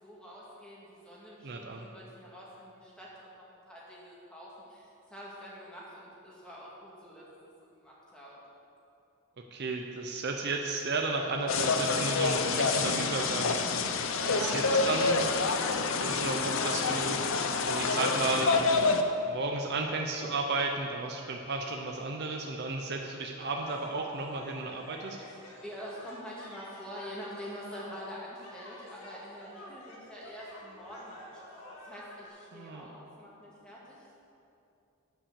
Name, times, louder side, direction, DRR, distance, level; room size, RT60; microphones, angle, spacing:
voice 1, 0.0-7.3 7.8-8.4 14.2-15.0 25.6-31.4 31.8-34.2, equal, 5° left, -6 dB, 1.9 m, -45 dB
voice 2, 1.4-1.9 9.4-13.6 14.3-15.3 15.9-17.2 17.7-18.6 19.3-25.2 32.5-32.9, right 3 dB, 50° right, 2 dB, 0.6 m, -33 dB
sound 1, 11.5-19.0, left 4 dB, 60° left, 0.6 m, -28 dB
sound 2, 23.4-32.3, left 1 dB, 80° left, 1.7 m, -50 dB
9.9 x 5.7 x 7.0 m, 2.7 s
head